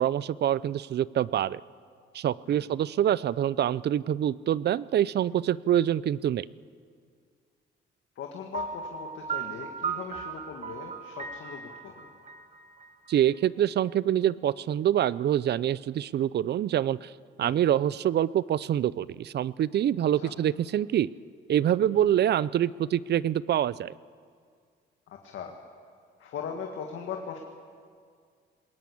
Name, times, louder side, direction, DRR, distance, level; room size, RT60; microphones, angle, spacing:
voice 1, 0.0-1.6 2.1-6.4 13.1-17.1 17.4-21.1 21.5-23.9, right 11 dB, 55° right, 20 dB, 0.5 m, -25 dB
voice 2, 8.2-12.1 17.4-17.6 20.2-20.3 21.9-22.0 25.1-25.6 26.2-27.4, left 7 dB, 75° left, 2 dB, 1.9 m, -39 dB
Piano, 8.5-13.4, right 6 dB, 35° right, 1.4 m, -37 dB
21.0 x 18.5 x 8.6 m, 2.1 s
cardioid pair, 90°, 20 cm